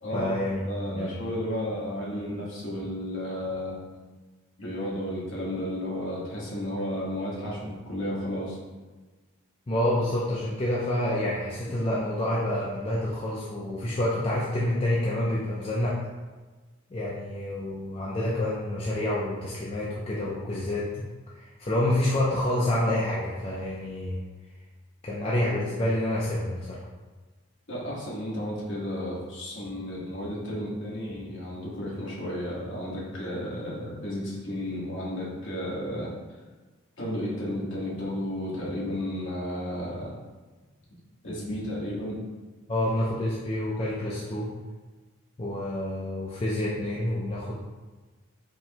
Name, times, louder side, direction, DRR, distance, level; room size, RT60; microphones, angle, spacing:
voice 1, 0.1-0.6 1.0-1.2 9.7-16.0 16.9-21.0 21.3-24.2 25.0-26.8 42.7-44.5 45.4-47.5, left 1 dB, 25° left, -6 dB, 0.5 m, -28 dB
voice 2, 0.7-3.8 4.6-8.6 27.7-36.1 37.0-40.2 41.2-42.2, left 1 dB, 60° left, -6 dB, 1.3 m, -33 dB
4.4 x 3.1 x 2.9 m, 1.3 s
head